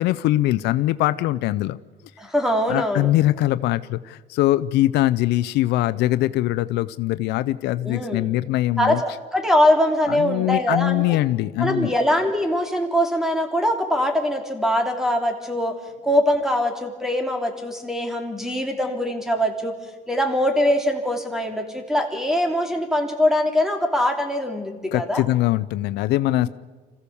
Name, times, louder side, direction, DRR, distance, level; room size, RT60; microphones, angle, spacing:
voice 1, 0.0-1.8 2.7-9.0 10.1-11.9 24.9-26.5, left 15 dB, 85° left, 15 dB, 0.6 m, -22 dB
voice 2, 2.2-3.1 7.8-8.3 8.8-11.0 11.6-15.7 16.0-19.7 20.1-25.2 26.4-26.5, left 1 dB, 5° right, 4 dB, 3.0 m, -22 dB
26.5 x 15.0 x 7.1 m, 1.3 s
cardioid pair, 110°, 17 cm